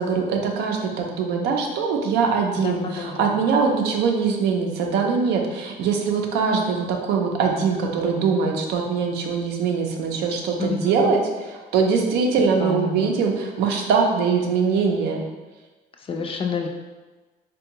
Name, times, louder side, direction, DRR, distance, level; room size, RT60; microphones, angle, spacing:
voice 1, 0.0-15.2, right 5 dB, 80° right, 2 dB, 0.5 m, -22 dB
voice 2, 2.6-3.3 10.6-11.1 12.6-13.1 16.1-16.7, left 5 dB, 35° left, 3 dB, 0.4 m, -28 dB
3.5 x 2.2 x 2.8 m, 1.3 s
cardioid pair, 110°, 17 cm